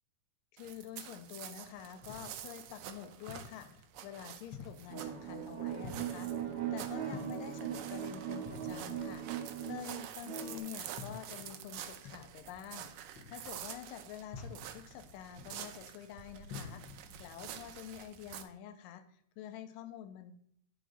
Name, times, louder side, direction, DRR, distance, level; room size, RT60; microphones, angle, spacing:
voice 1, 0.5-9.3 9.7-12.9 13.3-16.8 17.2-19.0 19.4-20.3, left 10 dB, 80° left, 9 dB, 2.4 m, -48 dB
sound 1, 0.6-18.4, right 10 dB, 85° right, 2.3 m, -48 dB
sound 2, 1.6-17.4, left 5 dB, 65° left, 1.2 m, -52 dB
sound 3, 4.9-10.6, right 9 dB, 60° right, 2.4 m, -39 dB
10.0 x 5.2 x 4.1 m, 0.67 s
omnidirectional pair, 3.9 m